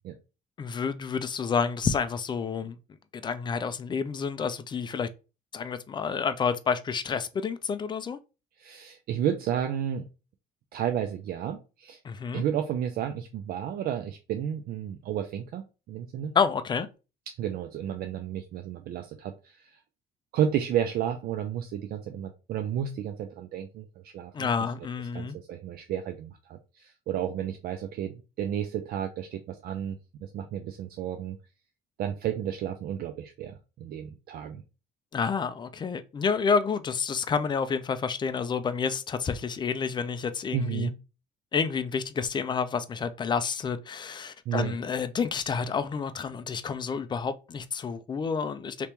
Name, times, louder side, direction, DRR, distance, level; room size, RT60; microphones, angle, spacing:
voice 1, 0.6-2.8 3.1-5.1 5.5-8.2 12.0-12.4 16.3-16.9 24.3-25.4 35.1-40.9 41.5-48.9, left 6 dB, 25° left, 0.4 m, -29 dB
voice 2, 8.6-10.0 10.7-12.0 12.3-16.3 17.3-19.6 20.3-24.5 25.1-30.0 30.2-31.4 32.0-34.6 40.5-41.0 44.5-44.8, right 9 dB, 65° right, 0.5 m, -32 dB
2.9 x 2.9 x 3.4 m
cardioid pair, 110°, 17 cm